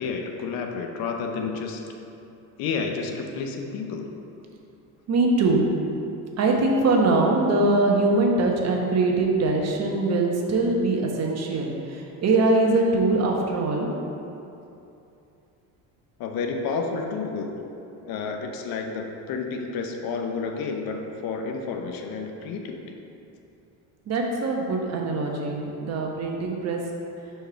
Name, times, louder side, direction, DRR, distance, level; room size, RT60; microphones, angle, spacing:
voice 1, 0.0-1.8 2.6-4.1 16.2-17.7 18.1-23.0, left 4 dB, 65° left, 4 dB, 0.8 m, -30 dB
voice 2, 5.1-5.7 6.4-13.9 24.1-26.8, right 2 dB, 40° right, 0 dB, 1.0 m, -22 dB
4.8 x 4.6 x 5.7 m, 2.7 s
supercardioid pair, 110°, 39 cm